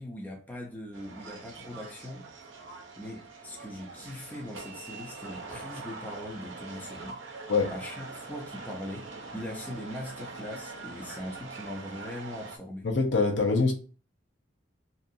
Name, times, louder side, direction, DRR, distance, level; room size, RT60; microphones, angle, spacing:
voice 1, 0.0-2.3 3.0-7.2 7.7-12.9, left 1 dB, 10° left, 0.5 m, -40 dB
sound 1, 0.9-12.6, right 3 dB, 80° right, 0.6 m, -43 dB
voice 2, 12.8-13.7, left 4 dB, 65° left, 0.7 m, -24 dB
2.7 x 2.3 x 2.6 m
head